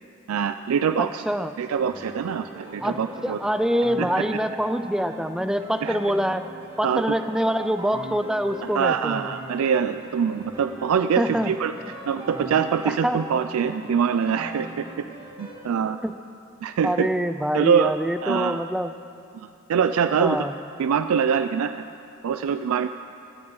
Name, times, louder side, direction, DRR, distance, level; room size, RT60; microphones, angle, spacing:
voice 1, 0.3-1.2 1.6-3.4 4.0-4.1 5.8-6.0 6.8-7.0 8.7-15.0 15.4-16.0 16.6-17.1 17.5-17.9 18.2-18.6 19.3-20.4 20.8-21.7 22.2-22.9, right 7 dB, 90° right, 10 dB, 0.3 m, -24 dB
voice 2, 1.0-1.6 2.8-6.5 6.8-9.3 11.2-11.5 12.8-13.3 16.0-16.2 16.8-18.9 20.2-20.5, equal, 5° right, 11 dB, 0.3 m, -25 dB
sound 1, 1.6-15.6, right 1 dB, 25° right, 1.9 m, -40 dB
15.5 x 12.0 x 3.8 m, 2.6 s
head